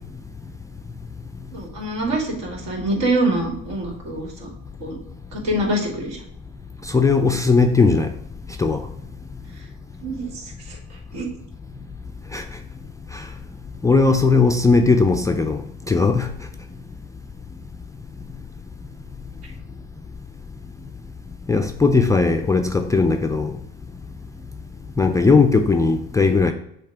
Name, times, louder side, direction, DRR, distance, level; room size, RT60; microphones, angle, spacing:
voice 1, 1.5-4.5 4.8-5.0 5.3-6.2 10.0-10.8 11.1-11.3, right 1 dB, 60° right, 2.4 m, -25 dB
voice 2, 6.9-8.1 8.6-8.8 12.3-12.4 13.8-15.6 15.9-16.3 21.5-23.5 25.0-26.5, left 4 dB, 10° left, 0.4 m, -17 dB
7.2 x 2.9 x 4.8 m
supercardioid pair, 105°, 29 cm